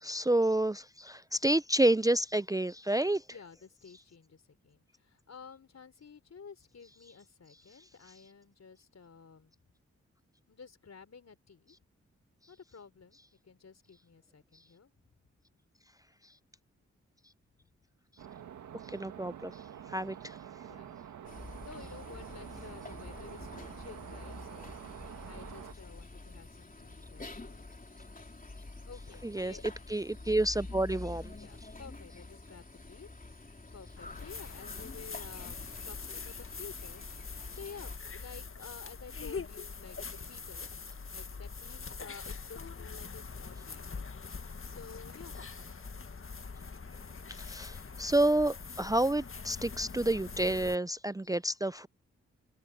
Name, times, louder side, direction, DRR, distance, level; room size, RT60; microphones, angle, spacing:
voice 1, 0.0-3.2 18.9-19.5 19.9-20.4 29.2-29.5 29.9-31.3 47.4-51.9, right 1 dB, 10° right, 0.5 m, -29 dB
voice 2, 3.3-9.5 10.5-11.8 12.5-13.2 13.4-14.9 20.6-20.9 21.6-27.6 28.9-29.7 31.3-40.7 41.1-44.0 44.6-45.4, left 5 dB, 60° left, 4.3 m, -52 dB
sound 1, 18.2-25.7, right 9 dB, 90° right, 1.8 m, -47 dB
sound 2, 21.2-38.0, left 2 dB, 30° left, 3.4 m, -47 dB
sound 3, 34.0-50.8, left 4 dB, 45° left, 1.8 m, -43 dB
open air
supercardioid pair, 40°, 29 cm